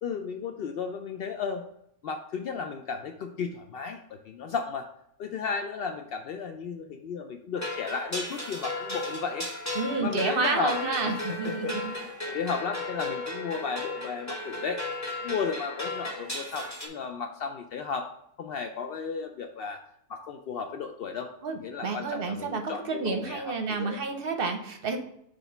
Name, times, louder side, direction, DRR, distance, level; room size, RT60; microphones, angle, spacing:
voice 1, 0.0-1.6 2.0-4.0 4.3-4.9 5.2-9.5 10.0-10.8 11.0-14.8 15.2-18.1 18.4-19.8 20.1-21.3 21.6-24.0, left 5 dB, 75° left, 5 dB, 0.5 m, -34 dB
sound 1, 7.6-16.9, left 2 dB, 10° left, 1.2 m, -35 dB
voice 2, 9.8-11.8 21.4-25.0, right 4 dB, 50° right, 5 dB, 0.8 m, -30 dB
6.2 x 3.4 x 5.5 m, 0.75 s
omnidirectional pair, 1.5 m